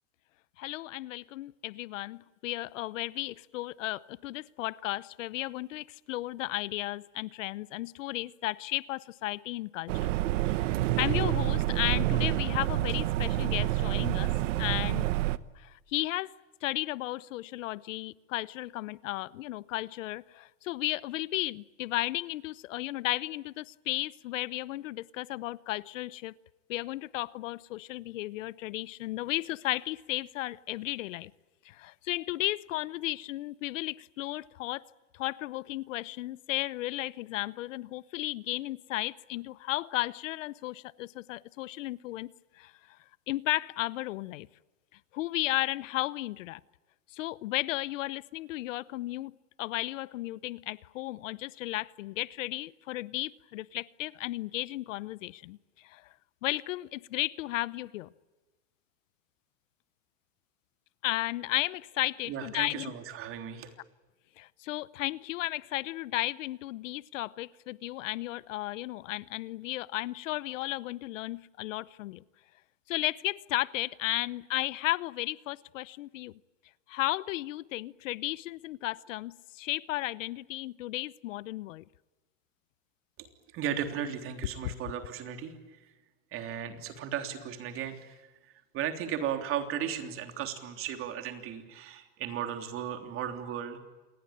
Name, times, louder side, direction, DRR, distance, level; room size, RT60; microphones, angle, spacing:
voice 1, 0.6-10.1 10.5-10.7 11.0-14.3 14.6-15.1 15.6-16.3 16.6-26.3 26.7-31.3 31.6-34.8 35.1-42.3 42.6-42.7 43.3-44.5 45.1-46.6 47.1-49.3 49.6-55.6 55.8-56.0 56.4-58.1 61.0-62.9 64.4-72.2 72.9-76.3 76.9-81.8 84.6-84.7, left 17 dB, 75° left, 0.8 m, -34 dB
sound 1, 9.9-15.4, right 16 dB, 75° right, 1.1 m, -28 dB
voice 2, 62.3-63.7 83.2-85.5 86.3-93.8, right 9 dB, 35° right, 3.3 m, -36 dB
27.5 x 21.0 x 8.8 m
supercardioid pair, 155°, 39 cm